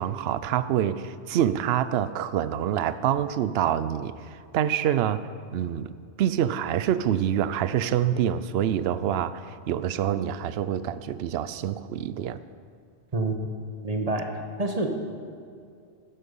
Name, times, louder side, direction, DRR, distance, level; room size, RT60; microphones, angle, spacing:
voice 1, 0.0-4.1 4.5-5.2 5.5-12.4, right 10 dB, 70° right, 14 dB, 0.8 m, -26 dB
voice 2, 13.1-13.4 13.8-14.3 14.6-15.1, right 2 dB, 35° right, 3 dB, 1.2 m, -27 dB
13.0 x 10.5 x 5.4 m, 2.4 s
omnidirectional pair, 1.2 m